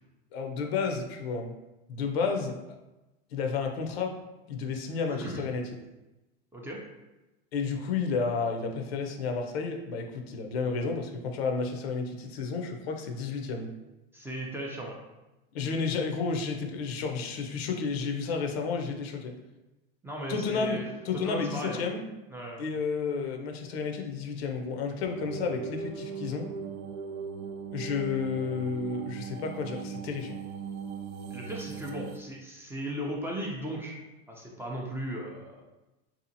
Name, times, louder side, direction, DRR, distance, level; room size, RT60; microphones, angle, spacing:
voice 1, 0.3-1.5 1.9-2.6 3.3-4.2 4.5-5.7 7.5-13.7 15.5-19.3 20.3-20.8 21.0-22.0 22.6-26.5 27.7-30.4, left 5 dB, 80° left, 3 dB, 0.6 m, -31 dB
voice 2, 5.1-5.4 6.5-6.8 14.1-15.0 20.0-20.8 21.2-21.9 22.3-22.6 31.3-34.0 34.3-35.6, right 1 dB, 10° right, -2 dB, 0.3 m, -36 dB
sound 1, 25.0-32.2, right 6 dB, 85° right, 0.5 m, -39 dB
2.8 x 2.4 x 2.6 m, 1.0 s
supercardioid pair, 110°, 31 cm